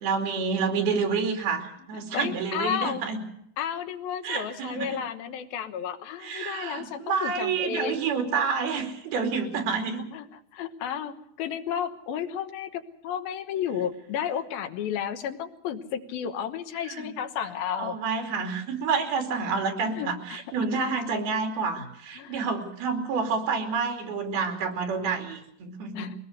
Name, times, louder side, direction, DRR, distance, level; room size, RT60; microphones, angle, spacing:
voice 1, 0.0-3.2 4.2-5.0 6.2-10.0 16.9-17.1 17.8-26.1, right 5 dB, 90° right, 4 dB, 4.8 m, -28 dB
voice 2, 2.1-3.0 3.6-8.0 9.8-10.3 10.5-18.0 19.4-19.5 19.9-20.7 21.7-21.9 22.2-22.3 25.9-26.1, left 9 dB, 80° left, 8 dB, 3.0 m, -32 dB
22.5 x 19.0 x 6.6 m, 0.75 s
omnidirectional pair, 4.3 m